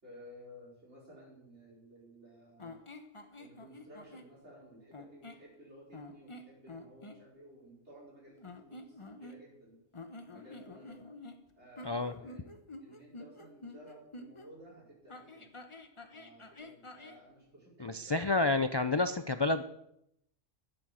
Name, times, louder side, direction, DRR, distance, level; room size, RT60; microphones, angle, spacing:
voice 1, 0.0-2.8 3.4-9.8 10.3-11.0 11.6-12.5 12.8-15.5 16.1-18.6, equal, 70° right, -4 dB, 5.3 m, -55 dB
sound 1, 2.6-4.3 4.9-5.5 5.9-7.2 8.4-9.6 9.9-14.5 15.1-17.2, left 2 dB, 30° left, 1.0 m, -49 dB
voice 2, 17.8-19.6, left 3 dB, 45° left, 9 dB, 0.3 m, -29 dB
12.5 x 7.3 x 7.5 m, 0.78 s
omnidirectional pair, 1.2 m